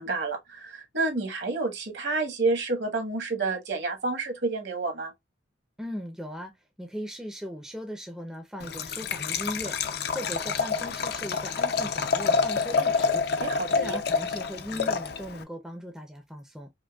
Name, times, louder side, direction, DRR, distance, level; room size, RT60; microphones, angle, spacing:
voice 1, 0.0-5.1 13.4-14.0, right 3 dB, 60° right, 1.1 m, -29 dB
voice 2, 5.8-6.5 6.8-13.3 13.7-16.7, equal, 5° right, 0.5 m, -38 dB
Liquid, 8.6-15.4, left 5 dB, 55° left, 0.4 m, -28 dB
5.0 x 2.2 x 2.2 m
head